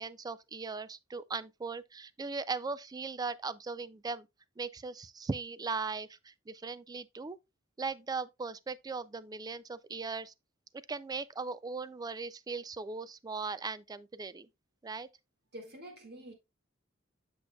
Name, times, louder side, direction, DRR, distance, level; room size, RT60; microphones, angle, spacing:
voice 1, 0.0-4.3 4.6-7.4 7.8-10.3 10.9-14.5 14.8-15.1, right 4 dB, 20° right, 0.3 m, -38 dB
voice 2, 15.5-16.3, right 1 dB, 55° right, 2.0 m, -47 dB
8.2 x 6.1 x 2.3 m
head